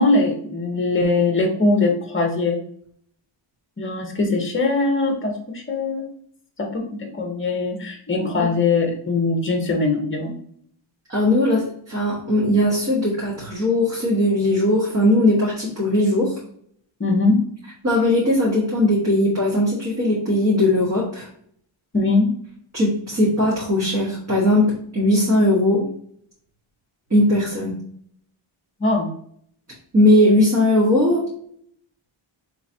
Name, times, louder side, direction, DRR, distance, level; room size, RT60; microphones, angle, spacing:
voice 1, 0.0-2.6 3.8-6.1 6.6-10.3 17.0-17.4 21.9-22.3 28.8-29.1, left 3 dB, 25° left, 3 dB, 0.8 m, -21 dB
voice 2, 11.1-16.3 17.8-21.3 22.7-25.9 27.1-27.8 29.9-31.2, left 1 dB, 30° right, -6 dB, 1.3 m, -19 dB
4.8 x 3.3 x 2.7 m, 0.64 s
wide cardioid pair, 160°, 49 cm